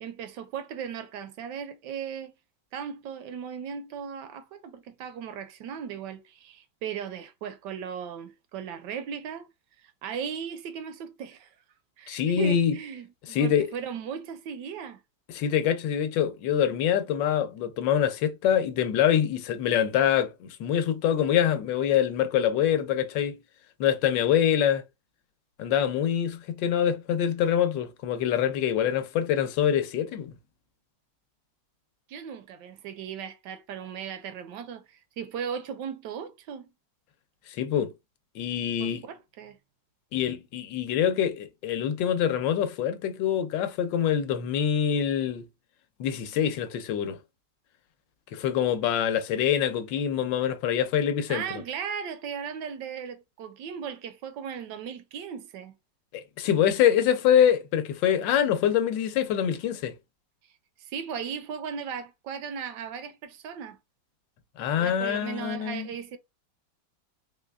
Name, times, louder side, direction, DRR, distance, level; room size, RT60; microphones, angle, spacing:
voice 1, 0.0-2.3 2.7-9.5 9.8-11.5 12.0-15.0 32.1-36.7 38.8-39.6 51.3-55.7 60.8-63.8 64.7-66.2, right 7 dB, 75° right, 1.1 m, -37 dB
voice 2, 12.1-12.8 13.3-13.7 15.3-23.4 23.8-24.8 25.6-30.4 37.5-37.9 38.3-39.1 40.1-45.5 46.0-47.2 48.3-51.6 56.1-59.9 64.6-65.9, left 9 dB, 80° left, 1.3 m, -25 dB
3.7 x 3.2 x 2.3 m
omnidirectional pair, 2.0 m